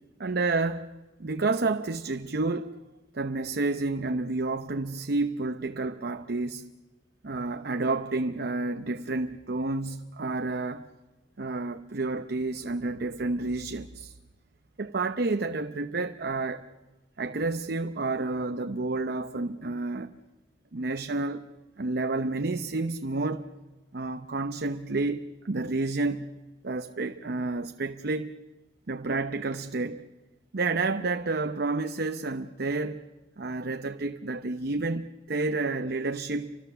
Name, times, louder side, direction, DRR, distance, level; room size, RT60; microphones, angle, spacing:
voice 1, 0.2-0.9 1.2-2.8 3.1-6.7 7.2-10.9 11.4-14.2 14.8-16.7 17.2-20.1 20.7-21.4 21.8-23.5 23.9-26.3 26.6-28.3 28.9-30.1 30.5-33.0 33.4-36.7, right 3 dB, 60° right, 0.8 m, -30 dB
30.0 x 25.5 x 6.9 m
head